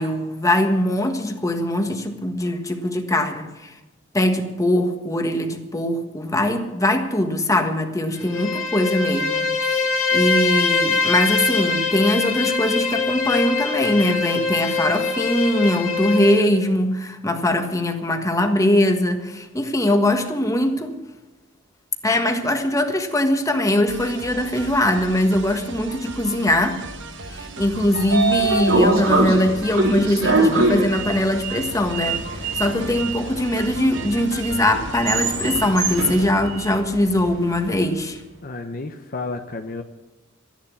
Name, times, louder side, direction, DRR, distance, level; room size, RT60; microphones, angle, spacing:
voice 1, 0.0-3.7 4.1-9.8 10.1-21.0 22.0-26.8 27.3-38.2, left 1 dB, 15° left, 5 dB, 1.5 m, -21 dB
Bowed string instrument, 8.1-16.5, left 4 dB, 80° left, 2.1 m, -23 dB
sound 1, 23.9-36.3, right 3 dB, 65° right, 1.4 m, -37 dB
Sliding door, 27.5-37.7, right 3 dB, 85° right, 4.0 m, -24 dB
voice 2, 38.4-39.8, left 3 dB, 45° left, 5 dB, 0.9 m, -31 dB
14.0 x 10.5 x 8.5 m, 1.1 s
head